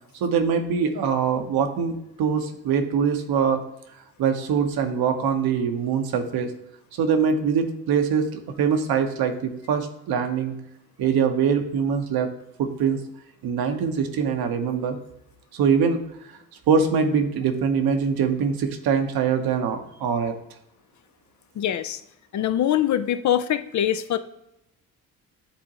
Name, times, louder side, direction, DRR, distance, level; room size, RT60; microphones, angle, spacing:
voice 1, 0.2-3.6 4.2-6.5 6.9-10.5 11.0-12.3 12.6-13.0 13.4-15.0 15.5-16.3 16.7-20.3, right 6 dB, 65° right, 6 dB, 1.0 m, -23 dB
voice 2, 21.6-22.0 22.3-24.2, left 11 dB, 45° left, 12 dB, 0.5 m, -23 dB
9.1 x 3.7 x 2.9 m, 0.83 s
hypercardioid pair, 55°, 40 cm